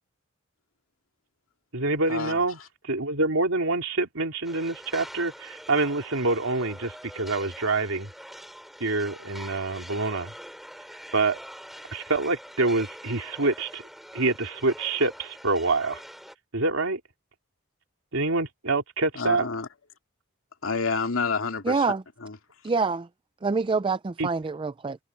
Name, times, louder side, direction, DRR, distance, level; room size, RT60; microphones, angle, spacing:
voice 1, 1.7-2.6 2.8-8.1 8.8-10.3 11.1-11.4 11.9-13.8 14.1-16.0 16.5-17.0 18.1-19.5 24.2-24.3, right 3 dB, 85° right, 2.9 m, -26 dB
sound 1, 4.4-16.3, equal, ahead, 4.6 m, -44 dB
voice 2, 19.1-19.7 20.6-21.9 22.2-22.4, left 4 dB, 75° left, 2.6 m, -28 dB
voice 3, 21.6-22.0 22.6-23.1 23.4-25.0, right 4 dB, 25° right, 0.4 m, -26 dB
head